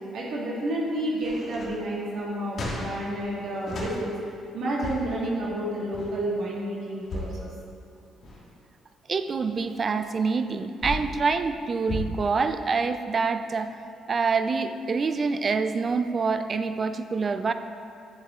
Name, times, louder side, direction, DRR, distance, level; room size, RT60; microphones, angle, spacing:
voice 1, 0.1-4.2 4.5-7.5, right 1 dB, 70° right, -5 dB, 1.6 m, -30 dB
sound 1, 1.2-4.0 4.6-5.2 5.8-6.1 6.9-7.4 8.0-8.6 9.1-11.1 11.9-12.0, left 1 dB, 55° left, 1.8 m, -36 dB
voice 2, 9.1-13.7 14.1-17.5, right 4 dB, 40° right, 9 dB, 0.4 m, -26 dB
10.5 x 7.3 x 2.4 m, 2.6 s
cardioid pair, 90°, 0 cm